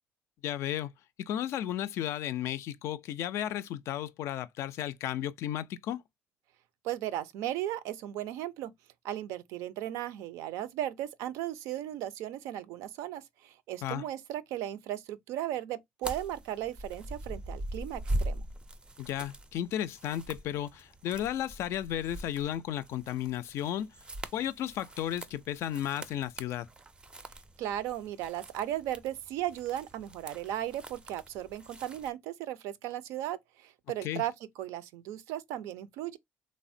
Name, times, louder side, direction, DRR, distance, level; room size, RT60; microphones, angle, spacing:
voice 1, 0.4-0.9 1.2-6.0 13.8-14.0 19.0-23.9 24.3-26.7 34.0-34.2, left 11 dB, 65° left, 0.3 m, -34 dB
voice 2, 6.8-8.7 9.0-18.5 27.6-36.2, right 12 dB, 80° right, 0.4 m, -36 dB
sound 1, 16.0-32.1, right 1 dB, 20° right, 0.4 m, -42 dB
3.2 x 2.1 x 2.5 m
cardioid pair, 100°, 5 cm